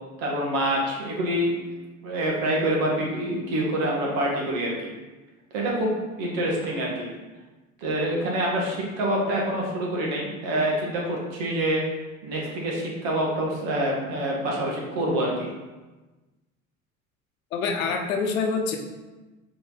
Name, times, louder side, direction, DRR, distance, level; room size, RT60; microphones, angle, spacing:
voice 1, 0.2-1.6 2.0-4.9 5.5-7.1 7.8-11.8 12.2-15.5, right 1 dB, 70° right, -2 dB, 1.9 m, -26 dB
voice 2, 17.5-18.8, left 5 dB, 85° left, 3 dB, 0.9 m, -26 dB
6.7 x 3.8 x 4.0 m, 1.2 s
hypercardioid pair, 70°, 40 cm